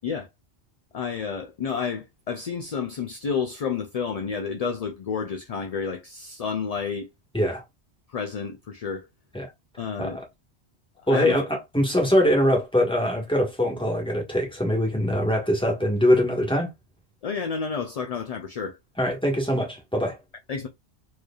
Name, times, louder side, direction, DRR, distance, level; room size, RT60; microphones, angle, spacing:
voice 1, 0.9-7.1 8.1-9.1 9.8-10.2 11.0-11.4 17.2-18.8 20.5-20.7, left 6 dB, 50° left, 0.5 m, -30 dB
voice 2, 11.1-16.7 19.0-20.2, equal, 5° left, 1.4 m, -23 dB
4.5 x 3.2 x 2.3 m
omnidirectional pair, 1.1 m